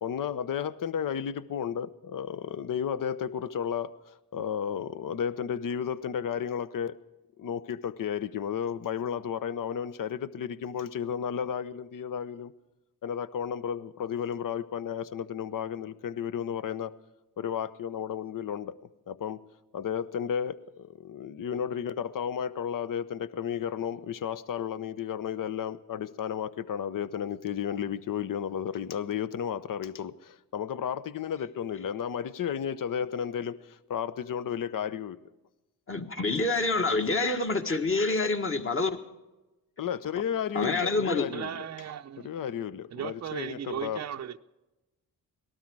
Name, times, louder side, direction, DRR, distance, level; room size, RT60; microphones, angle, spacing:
voice 1, 0.0-4.0 4.3-7.0 7.4-12.5 13.0-16.9 17.4-18.8 19.1-19.4 19.7-20.5 20.9-35.2 39.8-41.7 42.2-44.0, left 8 dB, 55° left, 0.9 m, -33 dB
voice 2, 35.9-38.9 40.5-41.3, left 3 dB, 30° left, 1.7 m, -27 dB
voice 3, 41.3-42.3 42.9-44.4, right 10 dB, 40° right, 0.7 m, -37 dB
18.5 x 12.5 x 4.7 m
supercardioid pair, 65°, 40 cm